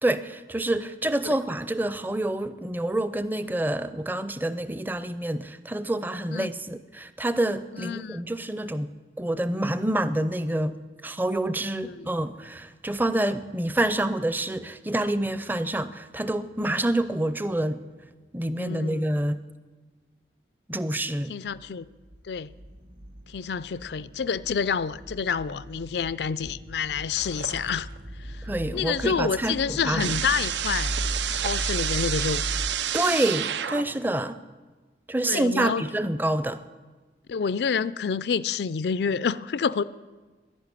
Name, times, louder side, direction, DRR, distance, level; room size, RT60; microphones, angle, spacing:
voice 1, 0.0-8.9 9.2-10.8 11.0-17.8 18.3-19.4 20.7-21.3 28.4-30.2 32.9-34.4 35.1-36.6, right 1 dB, 10° right, 13 dB, 0.5 m, -27 dB
voice 2, 7.7-8.2 11.8-12.1 18.6-19.0 21.3-21.9 22.2-22.5 23.3-27.9 28.2-28.4 28.7-30.9 31.3-32.4 35.2-35.8 37.3-39.8, left 6 dB, 75° left, 17 dB, 0.4 m, -28 dB
sound 1, 21.5-32.7, right 1 dB, 50° right, 1.5 m, -37 dB
sound 2, 27.2-28.0 28.3-34.1, right 9 dB, 90° right, 0.6 m, -31 dB
11.0 x 11.0 x 9.7 m, 1.3 s
head